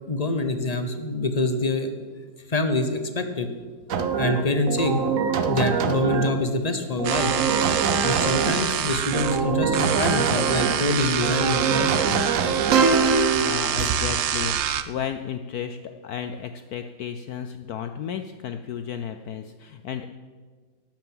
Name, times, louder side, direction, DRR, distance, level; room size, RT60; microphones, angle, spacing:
voice 1, 0.1-1.9 2.5-3.5 4.2-5.1 5.5-7.3 8.0-12.2, left 2 dB, 35° left, 8 dB, 0.7 m, -25 dB
sound 1, 3.9-6.4 7.0-8.7 9.1-10.8 11.2-14.0, right 5 dB, 55° right, 1.0 m, -24 dB
sound 2, 7.0-14.8, right 9 dB, 80° right, 0.6 m, -26 dB
voice 2, 13.3-20.1, left 8 dB, 70° left, 8 dB, 0.9 m, -33 dB
11.5 x 9.1 x 7.8 m, 1.5 s
omnidirectional pair, 2.0 m